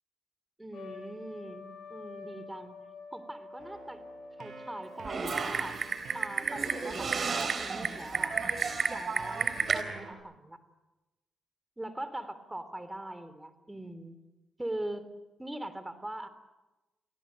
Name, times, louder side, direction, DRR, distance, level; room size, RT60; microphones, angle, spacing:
voice 1, 0.6-2.8 3.1-4.0 4.4-5.8 6.1-8.3 8.8-10.6 11.8-14.2 14.6-15.1 15.4-16.3, right 1 dB, 15° right, 12 dB, 3.5 m, -41 dB
Trumpet, 0.7-5.7, left 4 dB, 70° left, 6.3 m, -48 dB
Keyboard (musical), 3.6-10.1, right 4 dB, 75° right, 5.9 m, -49 dB
Typing, 5.0-9.8, right 5 dB, 50° right, 3.9 m, -31 dB
29.5 x 18.0 x 8.9 m, 1.1 s
cardioid pair, 70°, 0 cm